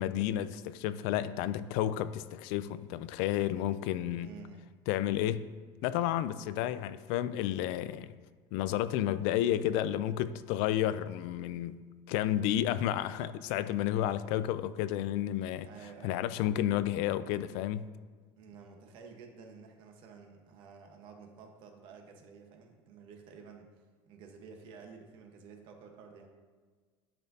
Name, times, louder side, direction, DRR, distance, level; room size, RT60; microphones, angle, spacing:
voice 1, 0.0-4.4 4.9-5.5 5.8-8.1 8.5-11.8 12.1-15.7 16.0-17.9, left 12 dB, 70° left, 0.4 m, -31 dB
voice 2, 4.2-4.7 15.6-16.2 18.4-23.7 24.1-26.3, right 5 dB, 55° right, 1.2 m, -51 dB
10.5 x 5.9 x 2.8 m
cardioid pair, 145°, 10 cm